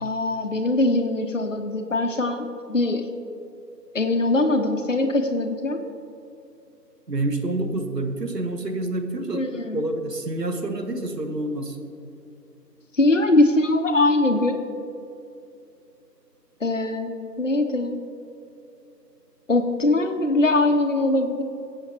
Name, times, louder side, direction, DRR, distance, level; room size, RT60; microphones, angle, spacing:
voice 1, 0.0-3.1 3.9-5.8 9.3-9.8 12.9-14.6 16.6-18.0 19.5-21.4, left 2 dB, 50° left, 5 dB, 0.7 m, -22 dB
voice 2, 7.1-11.8, right 2 dB, 70° right, 6 dB, 1.2 m, -28 dB
17.0 x 7.6 x 2.9 m, 2.6 s
figure-of-eight pair, 170°, 50 cm